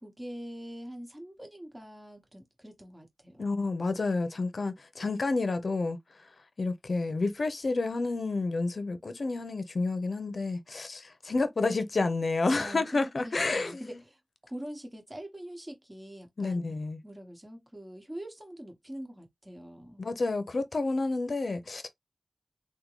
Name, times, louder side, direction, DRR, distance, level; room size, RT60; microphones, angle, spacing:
voice 1, 0.0-3.5 12.6-16.6 17.0-20.0, right 1 dB, 20° right, 1.2 m, -44 dB
voice 2, 3.4-6.0 6.6-14.0 16.4-17.0 20.0-21.9, left 3 dB, 70° left, 0.5 m, -30 dB
3.6 x 2.2 x 3.0 m
wide cardioid pair, 80°, 0 cm